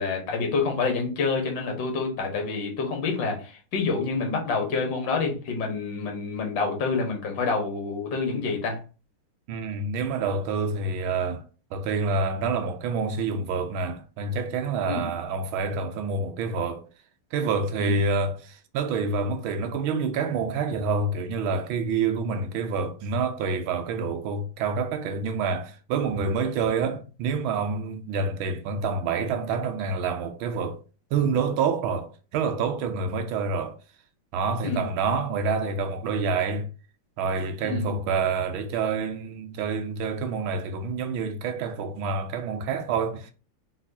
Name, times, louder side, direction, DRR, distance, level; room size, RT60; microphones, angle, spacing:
voice 1, 0.0-8.8 14.8-15.1 17.8-17.9 34.6-34.9 37.6-37.9, left 4 dB, 60° left, 1.9 m, -27 dB
voice 2, 9.5-11.4 11.7-16.8 17.3-30.8 31.1-33.8 34.3-36.7 37.2-43.3, right 4 dB, 75° right, 1.4 m, -27 dB
4.2 x 4.1 x 2.7 m
omnidirectional pair, 2.4 m